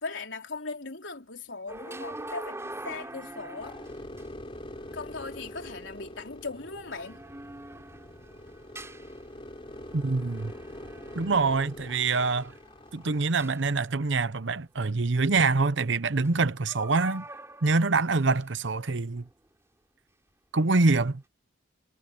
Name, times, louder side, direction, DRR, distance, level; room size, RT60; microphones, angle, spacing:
voice 1, 0.0-3.8 4.9-7.2, left 3 dB, 70° left, 4.0 m, -38 dB
sound 1, 1.7-14.4 16.2-16.4 16.7-18.5 19.2-19.3, right 1 dB, 15° right, 4.0 m, -45 dB
sound 2, 3.6-13.2, left 1 dB, 30° left, 3.7 m, -44 dB
voice 2, 9.9-10.5 11.1-12.5 12.9-17.2 17.6-19.2 20.5-21.2, right 3 dB, 65° right, 0.8 m, -25 dB
head